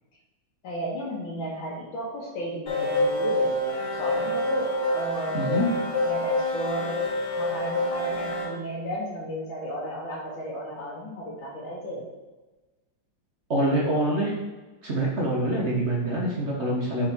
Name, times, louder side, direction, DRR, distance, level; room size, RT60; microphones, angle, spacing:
voice 1, 0.6-5.7 6.0-7.0 7.4-12.0, equal, 85° left, -8 dB, 2.2 m, -34 dB
sound 1, 2.7-8.4, left 1 dB, 30° left, 2.0 m, -27 dB
voice 2, 5.3-5.7 13.5-14.3 14.8-17.1, right 1 dB, 45° right, -2 dB, 0.9 m, -25 dB
5.7 x 4.4 x 4.4 m, 1.2 s
omnidirectional pair, 2.2 m